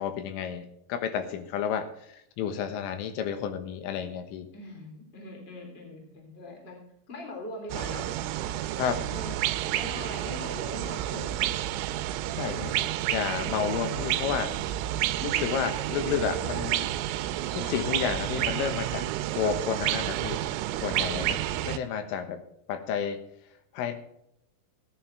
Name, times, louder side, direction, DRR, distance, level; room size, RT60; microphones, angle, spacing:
voice 1, 0.0-4.5 8.8-9.0 12.4-14.6 15.2-17.0 17.5-19.1 19.4-20.4 20.8-22.4 22.7-23.2 23.7-23.9, left 8 dB, 85° left, 8 dB, 3.8 m, -31 dB
voice 2, 4.5-6.8 7.1-8.1 9.1-11.3 12.5-12.7, left 1 dB, 15° left, 1 dB, 2.8 m, -41 dB
sound 1, 7.7-21.8, right 13 dB, 85° right, 3.2 m, -30 dB
16.0 x 9.7 x 3.4 m, 0.76 s
omnidirectional pair, 5.6 m